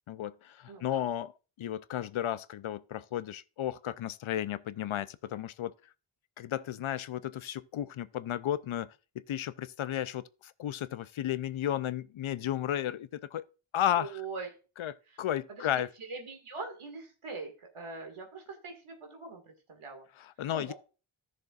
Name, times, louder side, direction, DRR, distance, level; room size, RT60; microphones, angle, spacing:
voice 1, 0.1-1.3 1.6-5.7 6.4-8.9 9.3-13.4 13.7-14.2 14.8-15.9 20.2-20.7, left 11 dB, 75° left, 0.6 m, -33 dB
voice 2, 0.7-1.0 14.0-14.5 15.1-15.2 15.5-20.1 20.5-20.7, right 4 dB, 90° right, 2.1 m, -42 dB
14.5 x 6.7 x 2.4 m
wide cardioid pair, 75°, 49 cm